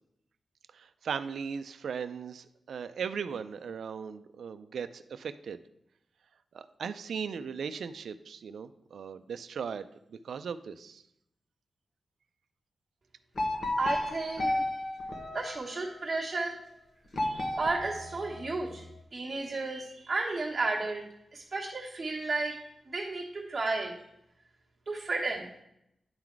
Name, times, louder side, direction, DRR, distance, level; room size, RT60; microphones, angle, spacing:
voice 1, 0.7-5.6 6.5-11.0, right 6 dB, 85° right, 11 dB, 0.3 m, -38 dB
sound 1, 13.3-16.0 17.1-18.9, left 1 dB, 45° left, 1.1 m, -33 dB
voice 2, 13.8-14.6 15.3-16.6 17.2-18.8 19.1-21.0 21.3-23.9 24.9-25.5, right 3 dB, 25° right, -6 dB, 1.3 m, -33 dB
9.5 x 3.9 x 4.6 m, 0.80 s
wide cardioid pair, 115°, 0 cm